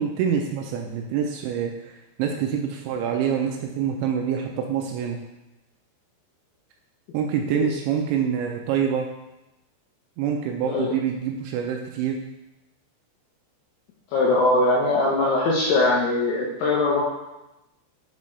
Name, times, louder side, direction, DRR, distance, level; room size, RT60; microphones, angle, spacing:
voice 1, 0.0-5.2 7.1-9.1 10.2-12.2, right 8 dB, 85° right, 2 dB, 2.7 m, -26 dB
voice 2, 14.1-17.0, left 2 dB, 75° left, -5 dB, 2.4 m, -21 dB
7.3 x 5.4 x 3.2 m, 0.95 s
omnidirectional pair, 5.6 m